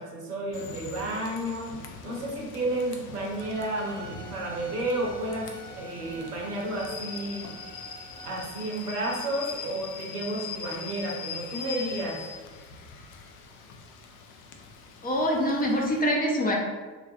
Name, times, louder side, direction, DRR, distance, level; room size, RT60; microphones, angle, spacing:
voice 1, 0.0-1.7 2.0-5.5 5.8-7.5 8.2-12.2, right 1 dB, 80° right, -2 dB, 0.7 m, -31 dB
Rain / Train, 0.5-16.0, left 5 dB, 60° left, 0.5 m, -42 dB
Bowed string instrument, 3.4-8.4, right 2 dB, 85° left, 1.2 m, -46 dB
voice 2, 15.0-16.5, equal, 20° left, -2 dB, 0.6 m, -25 dB
3.7 x 2.3 x 2.3 m, 1.4 s
figure-of-eight pair, 55°, 45 cm